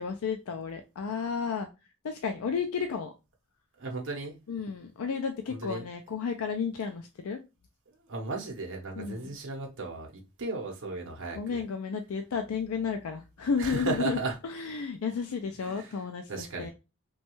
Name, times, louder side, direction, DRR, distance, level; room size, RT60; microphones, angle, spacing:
voice 1, 0.0-1.7 2.0-3.1 4.5-7.4 9.0-9.3 11.3-14.2 14.4-16.7, left 6 dB, 80° left, 0.4 m, -32 dB
voice 2, 3.8-4.4 5.5-5.8 8.1-10.1 10.4-11.6 13.6-14.4 15.6-16.0 16.3-16.7, right 3 dB, 60° right, 0.7 m, -35 dB
3.1 x 2.2 x 2.9 m
head